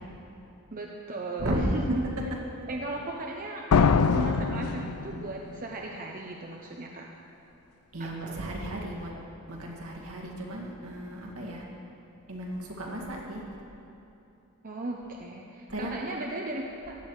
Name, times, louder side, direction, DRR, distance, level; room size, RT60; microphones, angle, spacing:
voice 1, 0.7-2.1 2.7-3.7 4.1-7.1 8.0-8.7 14.6-17.0, right 2 dB, 40° right, 0 dB, 0.8 m, -36 dB
sound 1, 3.7-5.5, left 5 dB, 75° left, 0.5 m, -23 dB
voice 2, 7.9-9.1 9.5-11.6 12.3-13.4 15.7-15.9, right 1 dB, 70° right, -2 dB, 2.1 m, -36 dB
15.0 x 9.6 x 4.8 m, 2.9 s
head